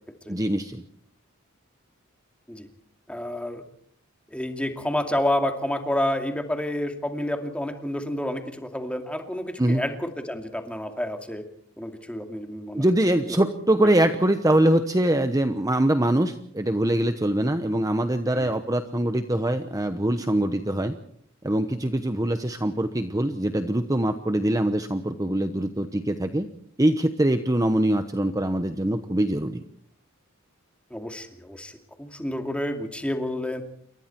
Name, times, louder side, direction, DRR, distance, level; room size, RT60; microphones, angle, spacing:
voice 1, 0.3-0.8 9.6-9.8 12.7-21.0 21.4-26.5 26.8-29.6, right 1 dB, 15° right, 8 dB, 1.0 m, -23 dB
voice 2, 3.1-3.6 4.3-11.4 11.8-12.9 13.3-13.4 13.8-14.0 18.3-18.6 30.9-33.6, left 1 dB, 5° left, 5 dB, 2.4 m, -29 dB
28.5 x 24.5 x 4.5 m, 0.63 s
head